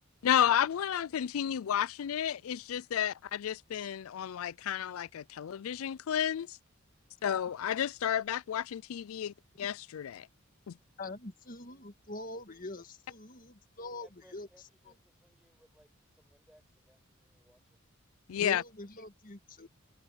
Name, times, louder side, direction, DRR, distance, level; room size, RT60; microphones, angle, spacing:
voice 1, 0.2-6.6 7.2-10.3 10.7-10.8 18.3-18.6, left 9 dB, 75° left, 0.4 m, -32 dB
voice 2, 11.0-14.5 18.4-19.7, left 2 dB, 40° left, 1.9 m, -44 dB
voice 3, 14.0-17.8, equal, 5° right, 6.4 m, -65 dB
head